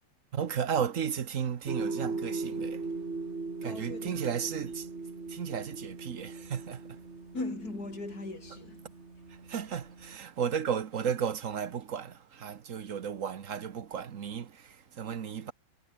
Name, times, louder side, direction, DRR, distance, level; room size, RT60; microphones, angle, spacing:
voice 1, 0.3-2.9 3.6-4.9 5.3-7.0 9.3-15.5, right 7 dB, 50° right, 1.2 m, -34 dB
sound 1, 1.7-10.2, right 3 dB, 30° right, 2.9 m, -39 dB
voice 2, 3.6-4.2 7.3-8.8, left 2 dB, 45° left, 7.0 m, -38 dB
omnidirectional pair, 2.3 m